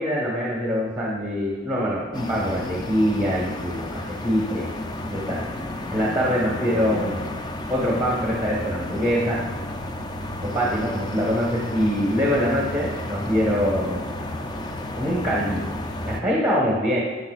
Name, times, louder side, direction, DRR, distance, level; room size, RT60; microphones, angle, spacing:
voice 1, 0.0-4.7 5.1-5.5 5.9-7.3 7.7-9.4 10.4-14.2 15.0-15.6 16.0-17.0, equal, 5° right, -4 dB, 1.2 m, -24 dB
sound 1, 2.1-16.2, left 1 dB, 20° left, 0.5 m, -32 dB
10.5 x 7.1 x 2.4 m, 1.4 s
head